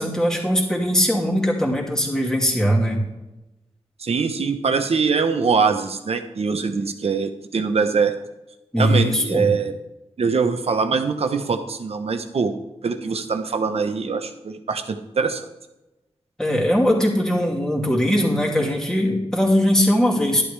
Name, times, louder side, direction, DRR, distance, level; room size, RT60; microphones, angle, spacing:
voice 1, 0.0-3.0 8.7-9.5 16.4-20.4, equal, 5° left, -3 dB, 2.6 m, -20 dB
voice 2, 4.0-8.1 8.8-9.8 10.2-12.6 12.8-15.5, right 5 dB, 65° right, 7 dB, 1.0 m, -23 dB
11.5 x 11.5 x 3.4 m, 1.0 s
wide cardioid pair, 105°, 11 cm